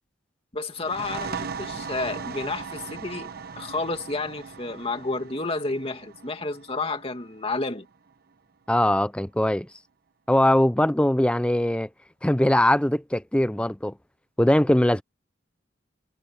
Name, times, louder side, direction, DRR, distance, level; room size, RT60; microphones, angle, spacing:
voice 1, 0.5-3.3 3.6-7.9, left 3 dB, 30° left, 2.5 m, -31 dB
sound 1, 0.7-8.1, right 6 dB, 55° right, 1.1 m, -38 dB
voice 2, 8.7-9.7 10.3-11.9 12.2-13.9 14.4-15.0, left 1 dB, 5° left, 0.5 m, -21 dB
head